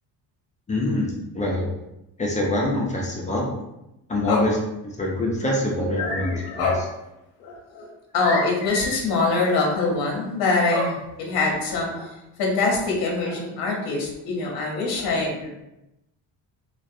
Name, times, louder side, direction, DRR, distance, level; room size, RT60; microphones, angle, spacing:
voice 1, 0.7-1.7 2.2-3.5 4.1-4.5 5.0-6.3 6.6-6.7, left 1 dB, 20° left, -2 dB, 0.3 m, -24 dB
voice 2, 6.0-6.9 7.4-12.1 12.4-15.5, left 3 dB, 60° left, 0 dB, 0.7 m, -24 dB
2.3 x 2.0 x 2.6 m, 0.89 s
cardioid pair, 130°, 42 cm